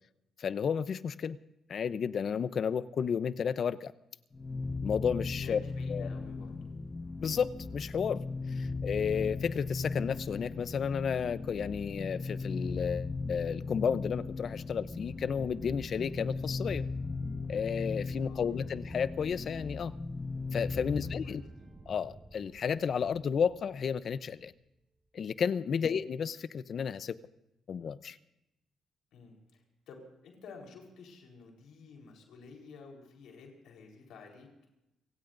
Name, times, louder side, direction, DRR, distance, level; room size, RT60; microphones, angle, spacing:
voice 1, 0.4-1.4 1.7-3.9 4.8-5.6 5.9-6.1 7.2-8.2 8.5-16.8 17.5-19.9 20.5-21.4 21.9-24.5 25.1-27.2 27.7-28.2, left 7 dB, 55° left, 15 dB, 0.7 m, -32 dB
sound 1, 4.3-21.3, left 3 dB, 25° left, 1.1 m, -37 dB
voice 2, 5.4-6.7 8.6-8.8 18.3-18.5 21.3-21.4 25.7-25.9 29.1-34.5, left 4 dB, 80° left, 1 dB, 4.1 m, -51 dB
sound 2, 13.1-24.8, right 2 dB, 30° right, 7.4 m, -54 dB
30.0 x 17.0 x 2.6 m, 0.90 s
cardioid pair, 90°, 0 cm